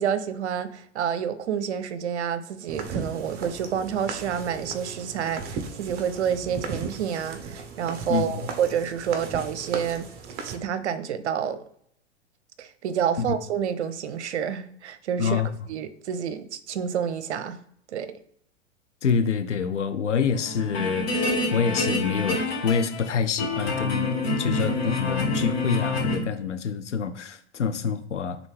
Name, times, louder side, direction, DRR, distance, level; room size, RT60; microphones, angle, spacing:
voice 1, 0.0-10.1 10.4-11.6 12.6-15.4 15.7-17.6 17.9-18.2, right 8 dB, 70° right, 0.6 m, -29 dB
sound 1, 2.7-10.6, right 5 dB, 30° right, 0.7 m, -36 dB
voice 2, 8.1-8.5 13.2-13.4 15.2-15.5 19.0-28.4, left 6 dB, 90° left, 0.5 m, -27 dB
sound 2, 20.3-23.1 23.4-26.2, left 2 dB, 60° left, 1.7 m, -27 dB
3.9 x 3.4 x 3.2 m
figure-of-eight pair, 95°, 35 cm